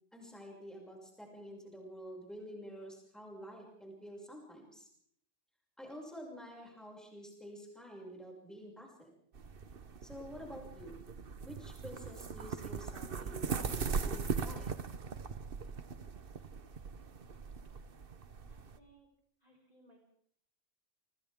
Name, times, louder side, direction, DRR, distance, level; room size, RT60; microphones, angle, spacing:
voice 1, 0.1-4.9 5.8-9.1 10.0-11.0 11.4-14.8, equal, ahead, -2 dB, 6.6 m, -49 dB
sound 1, 9.3-18.8, right 5 dB, 50° right, 1.2 m, -40 dB
voice 2, 18.5-19.1 19.4-20.0, right 2 dB, 30° left, -1 dB, 5.9 m, -64 dB
29.5 x 26.5 x 3.7 m, 0.68 s
omnidirectional pair, 1.2 m